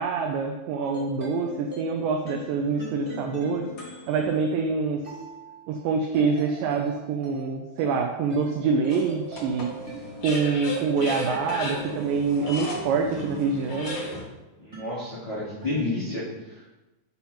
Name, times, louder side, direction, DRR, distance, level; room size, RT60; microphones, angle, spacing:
voice 1, 0.0-3.7 4.1-5.0 5.7-9.7 10.2-14.0, right 5 dB, 85° right, 3 dB, 1.9 m, -26 dB
sound 1, 0.8-14.2 14.7-15.9, right 2 dB, 25° right, 1.4 m, -42 dB
sound 2, 2.6-4.3 5.0-5.1 8.9-14.2, left 1 dB, 55° left, 1.5 m, -36 dB
voice 2, 14.6-16.7, left 2 dB, 70° left, -8 dB, 1.1 m, -31 dB
6.8 x 3.0 x 5.6 m, 1.1 s
omnidirectional pair, 4.4 m